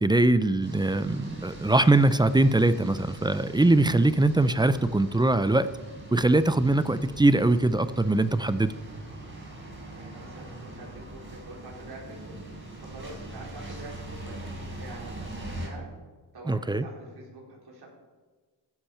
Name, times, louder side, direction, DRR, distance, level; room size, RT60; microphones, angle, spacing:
voice 1, 0.0-5.7 6.1-8.7 16.5-16.8, right 2 dB, 10° right, 13 dB, 0.4 m, -22 dB
sound 1, 0.6-15.7, right 1 dB, 25° right, 4.3 m, -42 dB
voice 2, 9.9-12.3 12.8-15.9 16.3-17.9, right 2 dB, 55° right, -3 dB, 4.4 m, -45 dB
15.5 x 10.5 x 4.4 m, 1.4 s
cardioid pair, 110°, 45 cm